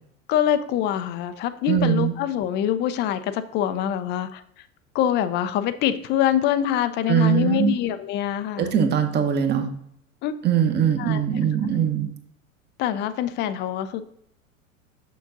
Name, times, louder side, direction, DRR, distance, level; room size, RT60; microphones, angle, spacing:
voice 1, 0.3-4.4 4.9-8.7 10.2-10.3 11.0-11.2 12.8-14.0, left 10 dB, 25° left, 12 dB, 0.4 m, -24 dB
voice 2, 1.7-2.1 7.1-7.7 8.6-9.7 10.4-12.1, right 8 dB, 25° right, 7 dB, 0.9 m, -21 dB
6.7 x 6.5 x 2.6 m, 0.72 s
figure-of-eight pair, 85°, 42 cm